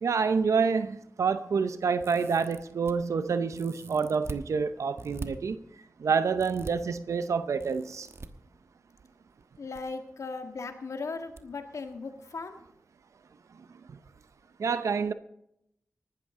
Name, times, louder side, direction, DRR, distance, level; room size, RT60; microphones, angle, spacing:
voice 1, 0.0-5.6 6.0-8.1 13.9-14.0 14.6-15.1, right 5 dB, 85° right, 0.7 m, -27 dB
Whiteboard marker cap-off, 2.0-2.9 3.5-4.4 5.0-5.3 6.4-6.7 7.6-8.3 9.4-9.8 10.1-10.2 11.4-11.5 11.8-11.9, right 3 dB, 60° right, 1.2 m, -43 dB
voice 2, 9.6-12.5, left 4 dB, 80° left, 1.6 m, -37 dB
19.5 x 12.5 x 3.7 m
cardioid pair, 40°, 5 cm